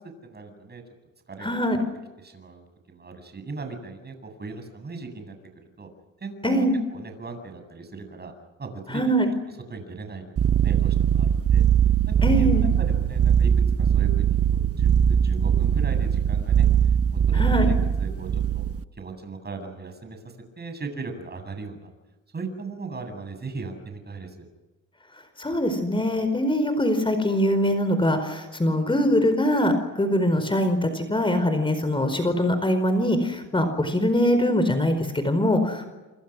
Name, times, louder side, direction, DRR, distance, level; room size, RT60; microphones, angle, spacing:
voice 1, 0.2-0.8 1.3-1.5 2.2-5.4 5.8-5.9 6.2-6.7 6.9-8.3 8.6-9.0 9.7-11.6 12.1-16.7 17.3-17.7 18.0-18.6 19.0-21.9 22.3-24.5 30.3-30.4, right 4 dB, 35° right, 6 dB, 7.9 m, -38 dB
voice 2, 1.4-1.8 6.4-6.8 8.9-9.3 12.2-12.7 17.3-17.7 25.4-35.9, equal, 15° left, 8 dB, 4.6 m, -23 dB
sound 1, 10.4-18.8, right 9 dB, 50° right, 1.0 m, -21 dB
27.5 x 27.5 x 6.3 m, 1.2 s
cardioid pair, 90°, 30 cm